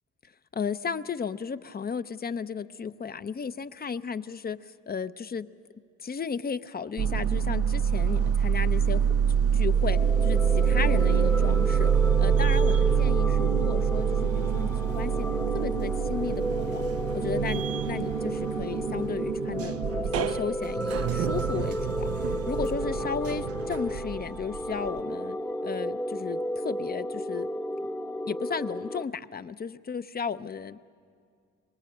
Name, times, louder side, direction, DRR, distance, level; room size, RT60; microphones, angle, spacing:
voice 1, 0.5-5.5 6.0-9.0 9.5-11.9 12.2-15.1 15.5-16.8 17.1-22.1 22.5-25.4 25.6-27.5 28.3-30.8, left 6 dB, 30° left, 13 dB, 0.6 m, -34 dB
sound 1, 7.0-25.0, right 8 dB, 50° right, 0.5 m, -26 dB
sound 2, 7.9-20.9, right 6 dB, 80° right, 2.4 m, -50 dB
sound 3, 9.7-29.0, left 1 dB, 10° left, 0.9 m, -33 dB
24.0 x 20.0 x 7.8 m, 2.3 s
cardioid pair, 90°, 30 cm